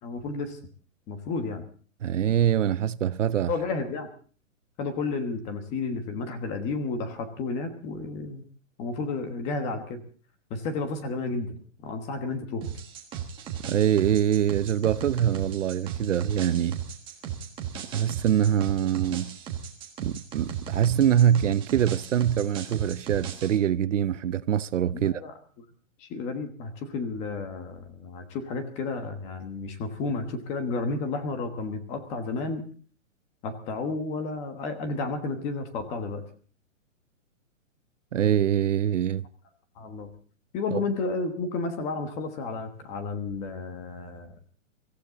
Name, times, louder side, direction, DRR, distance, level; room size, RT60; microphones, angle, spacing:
voice 1, 0.0-0.6 1.1-1.6 3.5-4.1 4.8-8.4 8.8-10.0 10.5-11.6 11.8-12.6 24.9-25.6 26.0-32.7 33.4-36.2 39.8-40.1 40.5-44.3, left 3 dB, 15° left, 1.3 m, -32 dB
voice 2, 2.0-3.5 13.7-16.8 17.9-19.4 20.0-25.1 38.1-39.2 40.7-40.8, right 10 dB, 65° right, 0.8 m, -24 dB
sound 1, 12.6-23.6, right 8 dB, 10° right, 1.5 m, -36 dB
24.5 x 15.0 x 4.0 m
hypercardioid pair, 165°, 40 cm